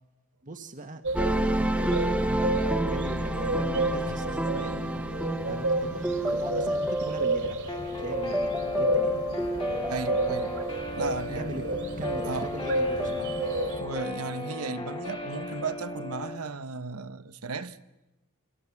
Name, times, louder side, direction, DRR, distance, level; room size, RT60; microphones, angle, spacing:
voice 1, 0.4-1.0 1.4-7.6 8.0-9.2 11.3-11.7 11.9-13.5, right 1 dB, 35° right, 1.4 m, -40 dB
sound 1, 1.0-13.8, right 2 dB, 60° right, 2.8 m, -32 dB
sound 2, 1.1-14.2, right 1 dB, 5° right, 0.9 m, -30 dB
Guitar, 7.7-16.4, left 3 dB, 25° left, 2.1 m, -36 dB
voice 2, 9.9-10.5 11.0-11.6 12.2-12.5 13.0-13.2 13.8-17.8, right 4 dB, 85° right, 1.1 m, -35 dB
28.0 x 25.5 x 7.2 m
head